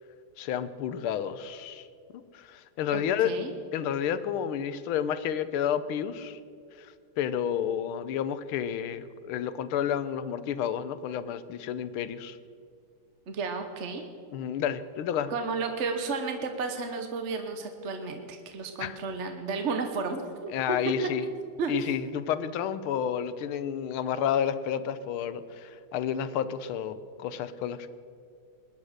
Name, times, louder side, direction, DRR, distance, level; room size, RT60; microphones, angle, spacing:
voice 1, 0.4-1.9 2.3-3.3 3.7-6.4 6.8-6.9 7.2-12.4 14.3-15.3 18.8-19.0 20.5-21.3 21.7-27.9, left 9 dB, 80° left, 14 dB, 1.6 m, -30 dB
voice 2, 2.9-3.5 13.3-14.0 15.3-20.8 21.3-21.7, right 4 dB, 45° right, 5 dB, 1.0 m, -33 dB
21.0 x 10.5 x 6.5 m, 2.3 s
omnidirectional pair, 2.3 m